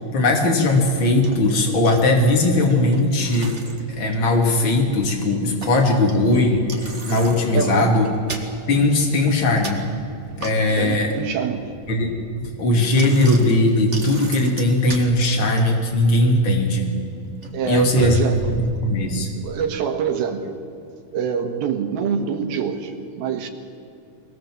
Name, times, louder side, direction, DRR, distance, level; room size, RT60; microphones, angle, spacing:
voice 1, 0.1-3.6 3.8-8.1 8.7-9.8 10.4-11.1 11.9-16.9 17.6-18.2 18.8-19.3, left 2 dB, 35° left, 1 dB, 3.3 m, -19 dB
Bicycle, 0.7-19.6, right 3 dB, 40° right, 1.0 m, -37 dB
voice 2, 7.5-7.9 10.8-11.7 17.5-18.6 19.4-20.6 21.1-23.5, right 7 dB, 80° right, 5 dB, 3.5 m, -25 dB
23.0 x 19.0 x 7.8 m, 2.7 s
omnidirectional pair, 4.4 m